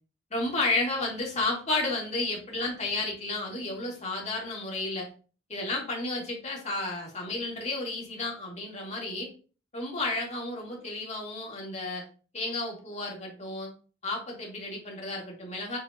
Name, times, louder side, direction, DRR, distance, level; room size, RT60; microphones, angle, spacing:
voice 1, 0.3-5.1 5.5-9.3 9.7-12.0 12.3-13.7 14.0-15.8, left 2 dB, 40° left, -2 dB, 2.4 m, -32 dB
7.5 x 4.4 x 2.9 m, 0.37 s
head